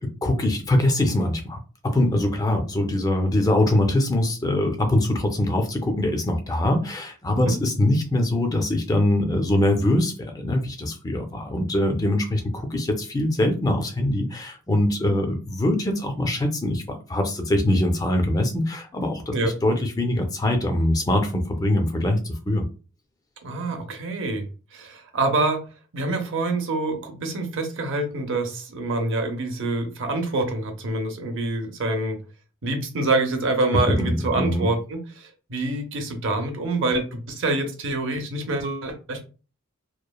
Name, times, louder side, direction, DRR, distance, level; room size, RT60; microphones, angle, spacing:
voice 1, 0.2-22.6 33.9-34.7, left 1 dB, 15° left, 0.4 m, -23 dB
voice 2, 23.4-24.4 24.7-25.6 25.9-32.2 32.6-39.3, right 2 dB, 60° right, 0.6 m, -26 dB
2.9 x 2.1 x 2.2 m
head